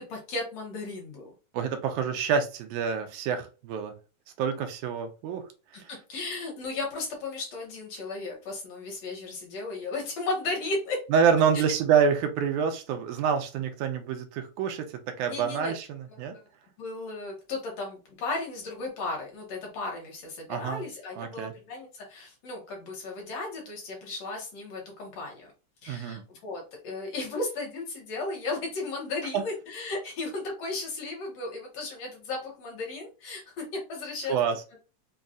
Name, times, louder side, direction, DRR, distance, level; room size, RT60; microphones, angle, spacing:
voice 1, 0.0-1.3 5.7-11.0 15.3-15.7 16.3-16.5 16.8-25.5 25.8-34.4, left 3 dB, 65° left, -1 dB, 2.0 m, -35 dB
voice 2, 1.5-3.9 4.4-5.4 5.7-5.9 11.1-16.4 20.5-20.8 21.2-21.5 25.9-26.2 29.3-29.4 34.3-34.5, right 7 dB, 85° right, 6 dB, 2.0 m, -27 dB
5.3 x 2.3 x 2.4 m, 0.32 s
omnidirectional pair, 3.5 m